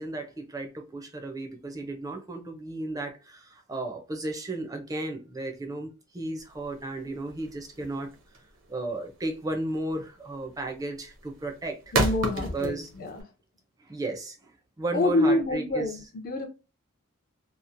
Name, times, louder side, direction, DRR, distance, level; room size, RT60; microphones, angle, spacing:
voice 1, 0.0-8.1 8.7-11.9 12.3-12.9 13.8-14.5 14.8-16.0, right 2 dB, 15° right, 0.4 m, -34 dB
sound 1, 6.4-13.2, right 2 dB, 65° right, 0.7 m, -32 dB
voice 2, 11.9-13.2 14.9-16.5, left 1 dB, 45° left, 0.4 m, -27 dB
2.8 x 2.0 x 2.5 m
head